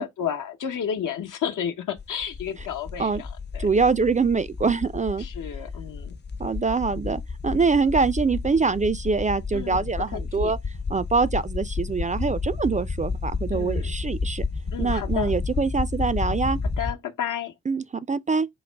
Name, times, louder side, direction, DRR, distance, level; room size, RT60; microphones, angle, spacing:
voice 1, 0.0-3.7 5.2-6.2 9.5-9.8 10.1-10.5 13.5-13.9 14.7-15.3 16.8-17.5, left 8 dB, 70° left, 0.9 m, -31 dB
sound 1, 2.0-16.9, left 4 dB, 30° left, 0.6 m, -31 dB
voice 2, 3.6-5.3 6.4-10.6 10.9-14.4 14.8-16.6 17.7-18.5, right 4 dB, 25° right, 0.4 m, -24 dB
3.9 x 2.1 x 4.4 m
supercardioid pair, 45°, 33 cm